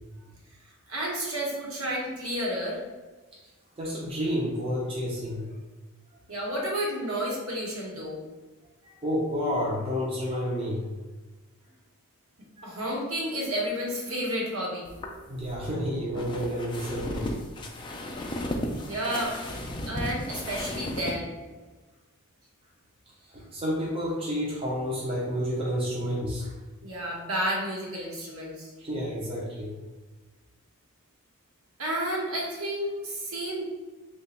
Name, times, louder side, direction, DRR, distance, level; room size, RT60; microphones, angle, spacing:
voice 1, 0.9-2.8 6.3-8.2 12.6-14.9 18.8-21.3 26.8-28.7 31.8-33.6, equal, 70° right, -3 dB, 1.0 m, -31 dB
voice 2, 3.8-5.5 8.8-10.8 12.6-12.8 15.3-17.3 23.2-26.5 28.8-29.8, equal, 25° right, -5 dB, 0.5 m, -30 dB
sound 1, 14.9-21.2, left 1 dB, 20° left, 0.3 m, -35 dB
3.0 x 2.2 x 4.1 m, 1.3 s
head